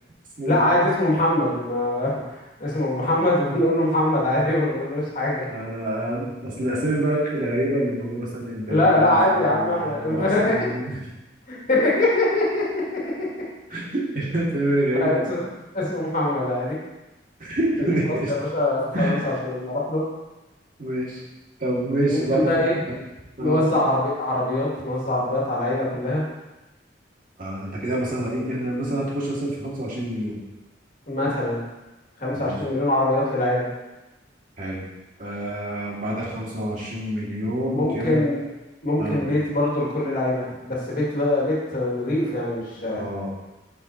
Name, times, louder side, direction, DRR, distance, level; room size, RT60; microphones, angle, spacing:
voice 1, 0.4-5.5 8.7-10.7 11.5-12.7 12.9-13.3 15.0-15.5 15.7-16.8 17.8-20.0 22.1-22.8 23.4-26.2 31.1-31.6 32.2-33.7 37.7-38.4 38.8-43.1, left 1 dB, 50° left, -5 dB, 2.0 m, -23 dB
voice 2, 5.5-11.0 13.7-15.3 17.4-18.3 18.9-19.3 20.8-21.2 21.6-22.4 22.9-23.0 23.4-23.7 27.4-30.4 32.3-32.5 34.6-34.8 35.2-38.2 39.0-39.2 43.0-43.3, right 1 dB, 50° right, -5 dB, 1.9 m, -27 dB
8.1 x 5.7 x 2.8 m, 1.1 s
head